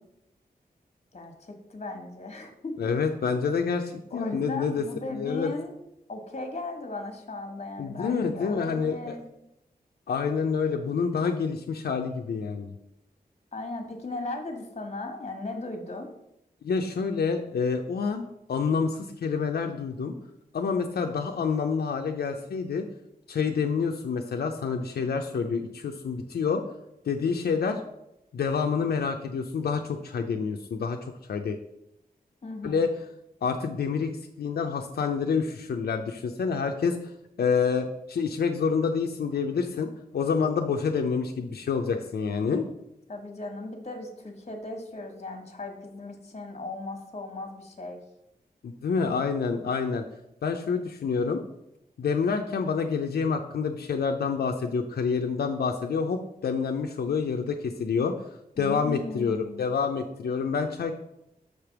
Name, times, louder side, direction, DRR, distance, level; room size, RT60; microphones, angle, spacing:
voice 1, 1.1-2.8 4.1-5.7 6.1-9.3 13.5-16.1 32.4-32.8 43.1-48.0 58.6-59.6, left 2 dB, 45° left, 5 dB, 1.3 m, -37 dB
voice 2, 2.8-4.8 5.1-5.5 7.8-9.2 10.1-12.7 16.6-18.2 18.5-20.1 20.5-22.9 23.3-26.6 27.0-27.8 28.3-31.6 32.6-32.9 33.4-34.1 34.4-37.0 37.4-42.6 48.6-50.0 50.4-51.4 52.0-58.2 58.6-61.0, left 5 dB, 85° left, 4 dB, 0.5 m, -27 dB
6.5 x 3.4 x 5.8 m, 0.83 s
wide cardioid pair, 95°, 16 cm